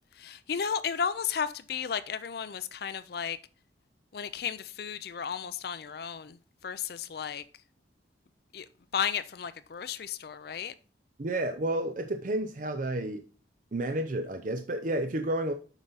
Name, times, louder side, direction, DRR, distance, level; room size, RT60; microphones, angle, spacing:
voice 1, 0.2-3.4 4.1-6.4 6.6-7.4 8.5-8.6 8.9-10.7, left 7 dB, 55° left, 0.4 m, -33 dB
voice 2, 11.2-13.2 13.7-15.5, right 1 dB, 45° right, 0.6 m, -31 dB
8.0 x 5.5 x 3.9 m
head